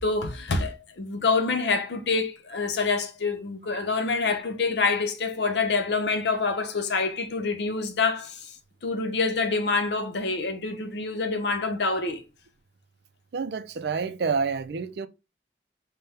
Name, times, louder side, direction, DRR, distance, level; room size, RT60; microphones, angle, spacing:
voice 1, 0.0-8.6 8.8-12.2, left 4 dB, 75° left, 0.7 m, -26 dB
voice 2, 13.3-15.1, right 5 dB, 65° right, 0.4 m, -28 dB
5.4 x 2.2 x 3.3 m
head